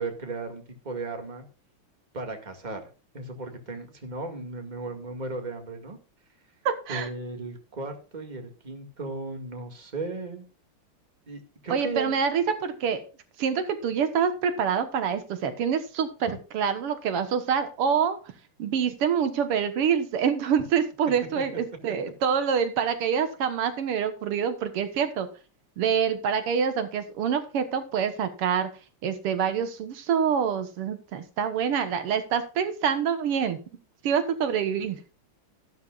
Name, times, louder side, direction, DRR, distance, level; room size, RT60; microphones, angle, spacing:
voice 1, 0.0-1.5 2.1-2.9 3.1-6.0 6.9-10.4 11.3-12.2 21.4-21.5 34.5-34.6, right 3 dB, 20° right, 5 dB, 2.1 m, -36 dB
voice 2, 6.7-7.1 11.7-13.0 13.4-16.3 16.5-18.2 18.6-25.3 25.8-28.7 29.0-33.6 34.0-35.0, right 7 dB, 85° right, 10 dB, 2.3 m, -26 dB
13.5 x 12.0 x 2.5 m, 0.34 s
omnidirectional pair, 2.4 m